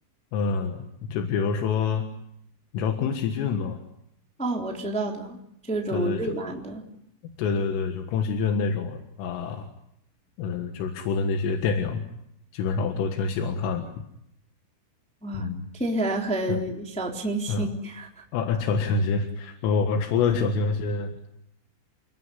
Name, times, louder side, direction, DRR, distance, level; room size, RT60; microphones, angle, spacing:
voice 1, 0.3-2.1 2.7-3.8 5.9-6.2 7.4-9.7 10.4-12.1 12.5-13.9 15.4-15.6 16.5-16.6 17.5-17.7 18.3-21.3, left 5 dB, 80° left, 5 dB, 4.2 m, -26 dB
voice 2, 4.4-5.4 5.7-6.8 15.2-15.5 15.7-18.2, right 2 dB, ahead, 0 dB, 2.3 m, -29 dB
29.0 x 19.5 x 9.8 m, 0.78 s
omnidirectional pair, 5.9 m